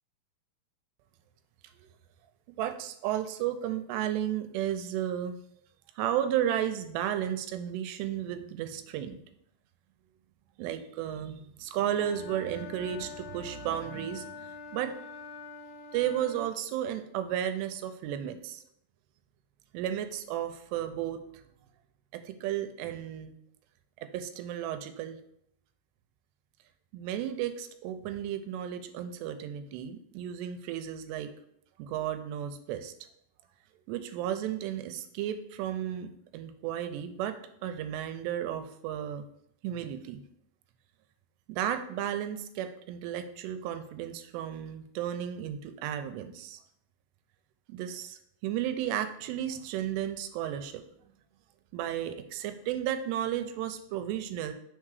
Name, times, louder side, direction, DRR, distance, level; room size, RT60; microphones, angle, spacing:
voice 1, 2.6-5.3 6.0-9.3 10.6-15.0 15.9-18.6 19.7-21.2 22.1-23.3 24.0-25.2 26.9-31.3 31.8-32.9 33.9-39.3 39.6-40.2 41.5-46.6 47.7-50.8 51.7-54.5, right 10 dB, 85° right, 9 dB, 2.7 m, -33 dB
Wind instrument woodwind instrument, 11.9-16.5, left 5 dB, 75° left, 3.0 m, -45 dB
6.1 x 3.7 x 4.7 m, 0.72 s
omnidirectional pair, 4.8 m